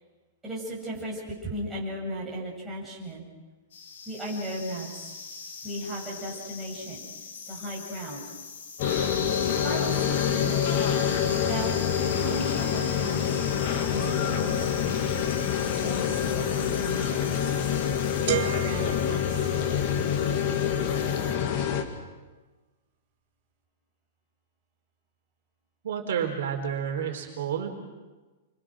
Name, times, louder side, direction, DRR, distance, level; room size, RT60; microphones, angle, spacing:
voice 1, 0.4-3.2 4.1-5.1 5.6-7.0 7.5-8.2 9.6-11.0 11.4-13.4 13.9-15.3 15.8-17.3 18.3-19.5, right 1 dB, 10° right, -5 dB, 7.3 m, -36 dB
sound 1, 3.7-21.3, left 5 dB, 70° left, 7.8 m, -39 dB
sound 2, 8.8-21.8, left 8 dB, 35° left, 2.4 m, -26 dB
sound 3, 18.3-20.1, right 9 dB, 45° right, 2.0 m, -33 dB
voice 2, 25.8-27.7, right 8 dB, 65° right, 3 dB, 4.2 m, -30 dB
29.5 x 24.5 x 6.3 m, 1.2 s
supercardioid pair, 175°, 0 cm